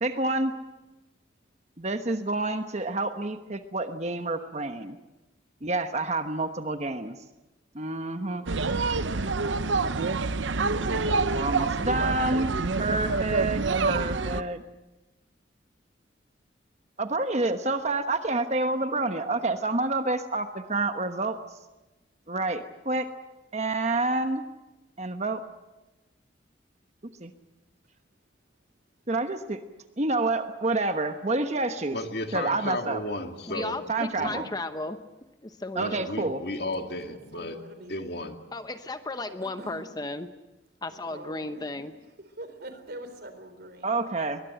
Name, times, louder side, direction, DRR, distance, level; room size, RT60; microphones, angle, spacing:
voice 1, 0.0-0.5 1.8-5.0 5.6-7.2 7.7-8.7 11.3-12.5 12.8-14.6 17.0-21.4 22.3-23.1 23.5-24.4 25.0-25.4 27.2-27.3 29.1-29.6 30.0-32.0 32.3-33.0 33.9-34.5 35.7-36.4 43.8-44.4, right 2 dB, 35° right, 8 dB, 1.1 m, -28 dB
sound 1, 8.5-14.4, right 3 dB, 85° right, 0.8 m, -27 dB
voice 2, 31.9-33.8 34.2-34.4 35.7-37.6 37.9-38.4, left 2 dB, 60° left, 5 dB, 2.2 m, -34 dB
voice 3, 33.5-35.0 35.4-36.3 38.5-40.3 40.8-41.9, left 2 dB, 20° left, 9 dB, 0.9 m, -35 dB
voice 4, 37.0-38.3 39.4-40.0 40.8-41.8 42.2-43.9, right 1 dB, 55° right, 9 dB, 3.6 m, -45 dB
22.5 x 21.0 x 9.0 m, 1.1 s
head